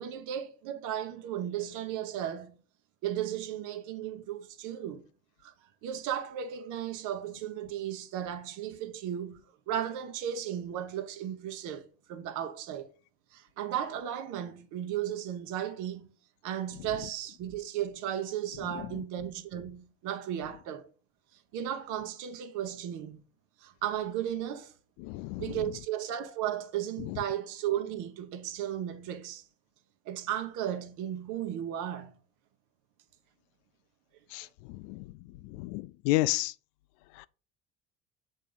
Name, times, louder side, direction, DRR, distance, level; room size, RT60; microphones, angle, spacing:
voice 1, 0.0-2.6 3.0-5.1 5.4-5.5 5.8-12.9 13.3-16.1 16.4-20.9 21.5-23.2 23.6-24.7 25.4-29.4 30.1-32.2, right 10 dB, 65° right, 1.0 m, -35 dB
voice 2, 25.0-25.4 34.3-34.4 34.9-35.0 35.6-36.5, left 18 dB, 65° left, 0.5 m, -30 dB
7.3 x 3.6 x 5.4 m
hypercardioid pair, 60°, 33 cm